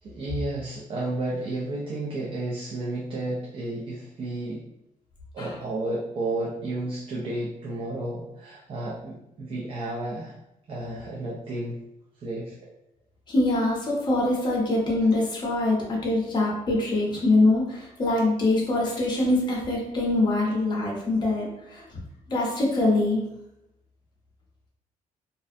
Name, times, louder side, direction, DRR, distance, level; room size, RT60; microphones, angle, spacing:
voice 1, 0.0-4.6 5.3-10.4 10.7-11.8 12.2-12.5, right 2 dB, 40° right, -4 dB, 0.4 m, -32 dB
voice 2, 13.3-21.8 22.3-23.2, left 2 dB, 30° left, -3 dB, 0.7 m, -24 dB
2.4 x 2.1 x 2.5 m, 0.83 s
cardioid pair, 165°, 14 cm